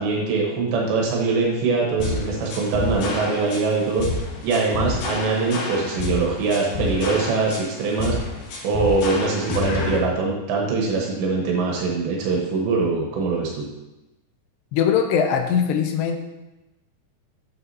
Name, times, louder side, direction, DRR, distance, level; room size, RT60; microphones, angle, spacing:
voice 1, 0.0-4.0 4.4-8.2 8.6-13.6, right 4 dB, 85° right, -2 dB, 3.4 m, -23 dB
sound 1, 2.0-10.0, left 3 dB, 65° left, 2.3 m, -28 dB
voice 2, 14.7-16.2, left 7 dB, 85° left, 5 dB, 2.8 m, -21 dB
9.0 x 8.0 x 2.7 m, 1.0 s
omnidirectional pair, 4.9 m